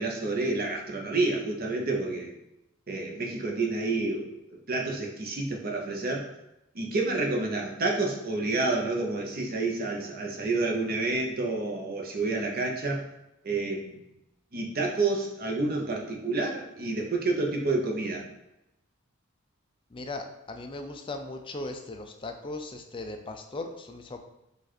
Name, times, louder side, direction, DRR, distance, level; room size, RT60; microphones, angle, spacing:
voice 1, 0.0-2.3 2.9-6.3 6.7-13.0 13.4-14.1 14.5-18.2, right 3 dB, 50° right, 1 dB, 0.8 m, -29 dB
voice 2, 19.9-24.2, left 2 dB, 25° left, 5 dB, 0.4 m, -38 dB
5.0 x 2.5 x 4.2 m, 0.89 s
head